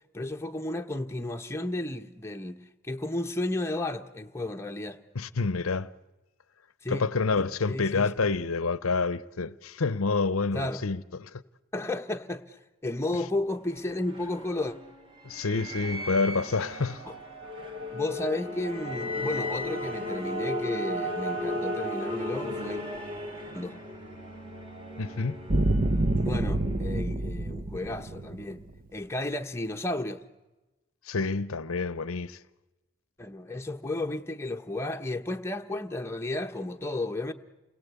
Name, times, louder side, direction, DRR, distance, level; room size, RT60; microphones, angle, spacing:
voice 1, 0.1-2.6 2.8-5.0 6.8-7.0 7.4-8.1 10.5-10.9 11.7-14.7 17.0-17.2 17.9-22.8 23.5-23.7 26.1-28.6 28.9-30.2 33.2-37.3, left 2 dB, 10° left, 1.1 m, -33 dB
voice 2, 5.1-5.9 6.9-11.4 15.2-17.0 25.0-25.4 31.1-32.4, left 4 dB, 80° left, 0.8 m, -28 dB
sound 1, 13.5-27.2, left 1 dB, 25° right, 2.9 m, -35 dB
sound 2, 25.5-28.7, right 1 dB, 40° right, 0.8 m, -27 dB
28.5 x 20.5 x 8.3 m
head